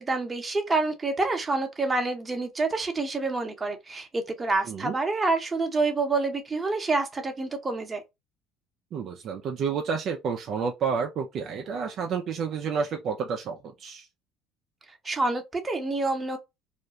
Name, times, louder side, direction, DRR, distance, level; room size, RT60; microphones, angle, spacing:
voice 1, 0.0-8.0 15.0-16.4, right 3 dB, 20° right, 0.8 m, -27 dB
voice 2, 8.9-14.1, right 6 dB, 55° right, 0.4 m, -30 dB
2.4 x 2.1 x 2.8 m
supercardioid pair, 85°, 0 cm